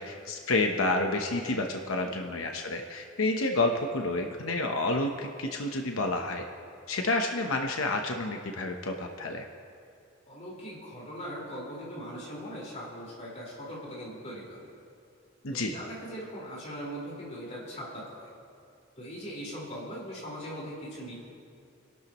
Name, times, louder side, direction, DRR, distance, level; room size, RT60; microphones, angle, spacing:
voice 1, 0.0-6.4 6.9-9.4 15.4-15.7, left 2 dB, 85° left, 3 dB, 0.9 m, -29 dB
voice 2, 10.3-14.7 15.5-18.3 19.0-21.1, equal, 35° left, -6 dB, 4.5 m, -40 dB
29.0 x 12.0 x 3.0 m, 2.5 s
head